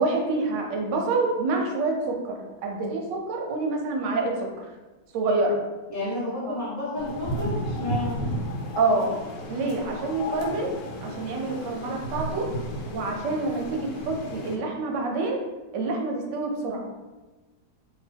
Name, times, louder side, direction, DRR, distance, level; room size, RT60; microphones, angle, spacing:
voice 1, 0.0-4.7 5.1-5.6 6.5-6.6 8.8-9.2 9.5-10.7 11.0-12.5 12.9-15.4 15.7-16.9, right 3 dB, 90° right, 1 dB, 1.3 m, -27 dB
voice 2, 5.9-8.2, left 1 dB, 30° right, -8 dB, 0.3 m, -31 dB
sound 1, 7.0-14.6, equal, 85° left, 1.3 m, -33 dB
2.9 x 2.5 x 3.3 m, 1.2 s
omnidirectional pair, 1.8 m